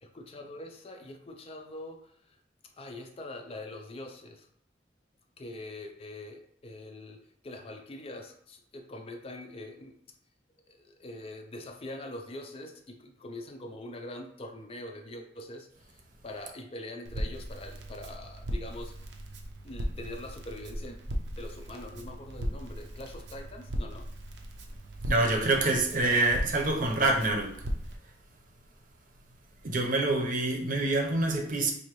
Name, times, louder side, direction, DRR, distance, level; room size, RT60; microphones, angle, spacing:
voice 1, 0.0-2.1 2.8-4.5 5.4-10.0 10.7-15.7 16.2-18.9 19.6-21.0 21.4-24.1, left 1 dB, 35° left, 0.4 m, -43 dB
Crackle, 17.0-27.9, equal, 85° right, 0.6 m, -37 dB
voice 2, 25.0-27.6 29.6-31.7, right 2 dB, 50° right, 0.7 m, -26 dB
4.7 x 2.7 x 3.0 m
head